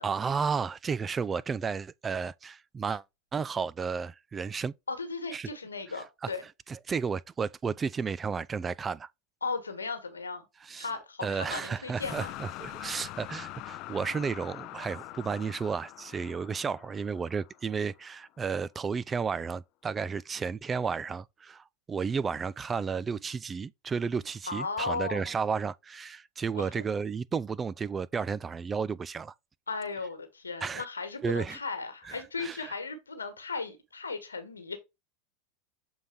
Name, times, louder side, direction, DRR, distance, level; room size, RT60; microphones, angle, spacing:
voice 1, 0.0-3.0 3.3-4.7 5.3-5.5 6.2-6.3 6.7-9.1 10.6-10.9 11.2-29.3 30.6-30.9 31.2-31.6 32.0-32.7, right 5 dB, 25° right, 0.3 m, -32 dB
voice 2, 4.9-6.4 9.4-10.5 10.8-12.3 24.5-25.3 26.5-26.7 29.7-34.8, left 4 dB, 90° left, 1.4 m, -36 dB
sound 1, 12.0-18.0, left 16 dB, 50° left, 0.4 m, -44 dB
7.0 x 3.9 x 3.4 m
hypercardioid pair, 85°, 0 cm